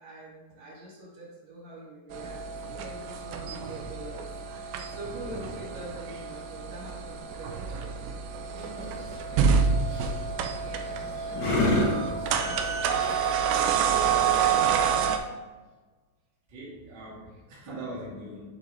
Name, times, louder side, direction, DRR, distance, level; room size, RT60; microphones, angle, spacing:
voice 1, 0.0-2.4 2.7-8.1 8.5-10.3 10.6-13.6, right 1 dB, 55° right, -6 dB, 3.3 m, -45 dB
sound 1, 2.1-15.2, right 6 dB, 85° right, 2.0 m, -28 dB
sound 2, 8.8-14.9, left 2 dB, 60° left, 1.1 m, -31 dB
voice 2, 16.5-18.5, right 1 dB, 35° right, -8 dB, 1.8 m, -41 dB
9.1 x 4.6 x 3.3 m, 1.3 s
omnidirectional pair, 4.7 m